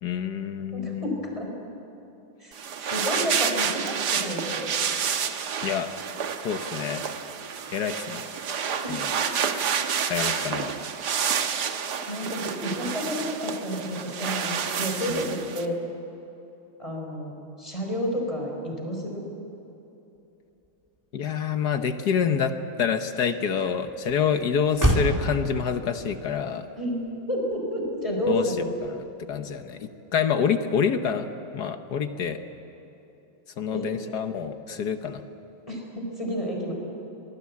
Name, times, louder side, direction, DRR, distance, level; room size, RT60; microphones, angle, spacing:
voice 1, 0.0-1.2 5.6-5.9 6.4-7.0 7.7-8.3 8.9-9.1 10.1-10.8 14.8-15.2 21.1-26.6 28.3-28.5 28.8-29.0 29.3-31.3 31.5-32.4 33.6-35.2, left 7 dB, 60° left, 8 dB, 1.4 m, -27 dB
voice 2, 0.7-1.5 2.4-2.5 2.8-4.7 8.8-9.0 12.1-15.8 16.8-19.3 26.8-27.0 27.3-28.7 33.7-33.9 35.7-36.7, equal, 15° left, 0 dB, 4.4 m, -30 dB
sound 1, 2.5-15.7, right 7 dB, 60° right, 1.5 m, -29 dB
Motor vehicle (road), 20.6-29.3, equal, 10° right, 2.5 m, -32 dB
25.5 x 19.5 x 8.4 m, 2.9 s
omnidirectional pair, 2.2 m